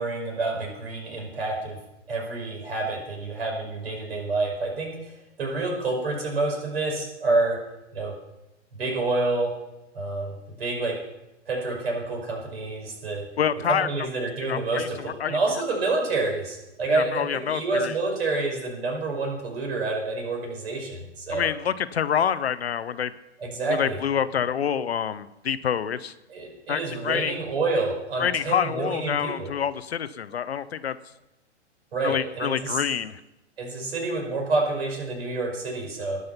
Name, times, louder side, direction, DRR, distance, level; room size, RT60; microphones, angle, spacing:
voice 1, 0.0-1.8 2.1-7.6 7.9-8.1 8.7-9.5 9.9-10.3 10.6-11.0 11.5-13.2 13.7-21.5 23.4-24.0 26.3-29.5 31.9-32.8 33.6-36.2, right 3 dB, 60° right, 0 dB, 5.5 m, -28 dB
voice 2, 13.4-13.9 14.4-15.4 16.9-17.9 21.3-23.1 23.7-26.1 26.7-27.4 28.2-31.0 32.0-33.2, left 8 dB, 60° left, 14 dB, 0.7 m, -27 dB
19.0 x 6.4 x 5.7 m, 0.94 s
figure-of-eight pair, 115°, 35 cm